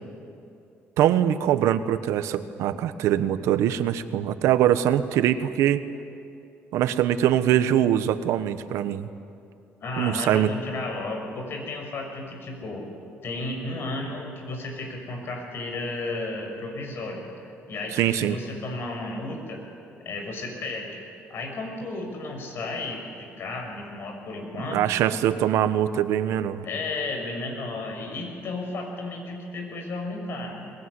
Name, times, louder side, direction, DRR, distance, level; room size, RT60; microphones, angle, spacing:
voice 1, 1.0-5.8 6.7-9.1 10.0-10.5 18.0-18.3 24.7-26.7, right 11 dB, 85° right, 11 dB, 1.2 m, -23 dB
voice 2, 9.8-12.9 13.2-19.6 20.0-21.0 21.3-24.9 26.6-30.6, left 2 dB, 50° left, 3 dB, 6.3 m, -33 dB
22.5 x 22.0 x 9.8 m, 2.5 s
cardioid pair, 135°, 5 cm